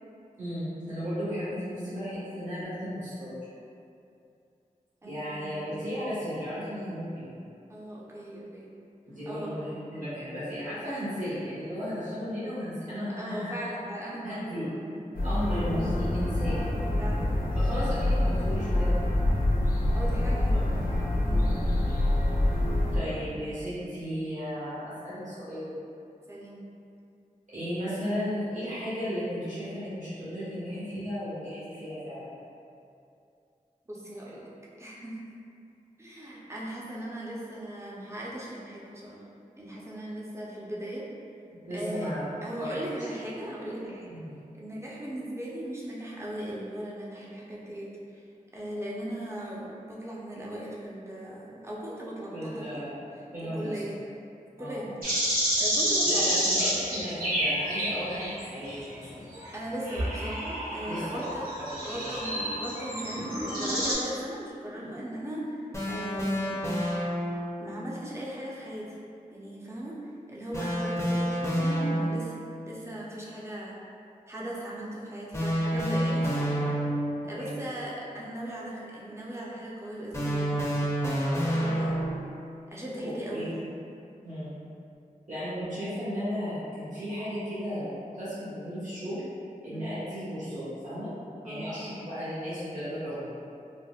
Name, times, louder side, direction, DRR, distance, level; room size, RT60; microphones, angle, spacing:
voice 1, 0.4-3.4 5.0-7.3 9.1-9.6 9.9-13.5 14.2-14.7 15.2-16.6 17.5-18.9 20.5-20.8 21.2-21.5 22.9-25.8 27.5-32.3 41.6-42.2 42.6-42.8 44.1-44.3 52.3-52.9 53.3-53.8 54.6-54.9 56.0-59.3 60.8-61.2 61.9-62.1 63.1-63.3 77.2-77.6 83.3-83.4 84.2-84.5 85.3-89.2 89.6-91.1 91.4-93.3, equal, 60° right, -13 dB, 1.3 m, -35 dB
voice 2, 5.0-5.7 7.7-8.7 9.3-9.8 13.2-15.0 17.0-17.6 19.9-20.7 21.2-21.5 26.3-26.7 33.9-34.5 34.8-35.2 36.0-39.2 39.6-41.1 41.7-42.1 42.4-44.1 44.6-48.2 48.5-52.9 53.5-54.0 54.6-54.9 55.6-56.4 59.5-61.5 61.8-65.6 65.9-66.6 67.6-68.9 69.3-70.0 70.3-72.4 72.7-73.8 74.3-76.6 77.3-80.8 81.3-82.0 82.7-83.7 89.7-89.9 91.4-91.7, right 1 dB, 20° right, -6 dB, 0.7 m, -38 dB
sound 1, 15.1-23.0, left 1 dB, 90° left, 0.5 m, -26 dB
sound 2, 55.0-58.7 59.3-63.9, equal, 85° right, 1.4 m, -29 dB
sound 3, 65.7-67.6 70.5-72.4 75.3-77.3 80.1-82.3, equal, 20° left, 0.7 m, -28 dB
4.2 x 2.1 x 2.4 m, 2.6 s
wide cardioid pair, 45°, 14 cm